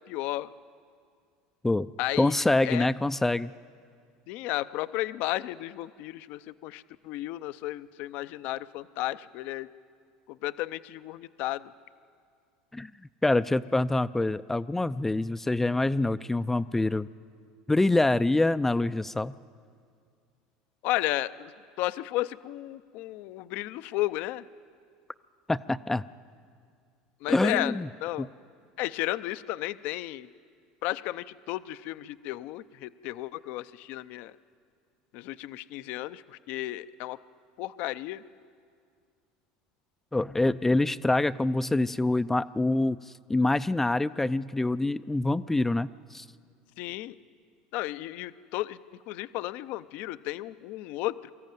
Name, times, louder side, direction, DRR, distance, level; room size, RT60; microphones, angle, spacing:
voice 1, 0.1-0.5 2.0-2.3 2.6-2.9 4.3-9.7 10.3-11.6 20.8-21.5 21.8-24.5 27.2-27.8 28.0-28.3 28.8-30.3 30.8-34.3 35.1-37.2 37.6-38.2 46.8-47.1 47.7-48.8 49.1-51.3, left 16 dB, 65° left, 14 dB, 0.6 m, -33 dB
voice 2, 2.2-3.5 12.7-12.9 13.2-17.1 17.7-19.4 25.5-26.0 27.3-27.9 28.2-28.3 40.1-43.0 43.3-46.3, left 2 dB, 10° left, 13 dB, 0.4 m, -25 dB
22.5 x 14.0 x 9.2 m, 2.2 s
supercardioid pair, 100°, 3 cm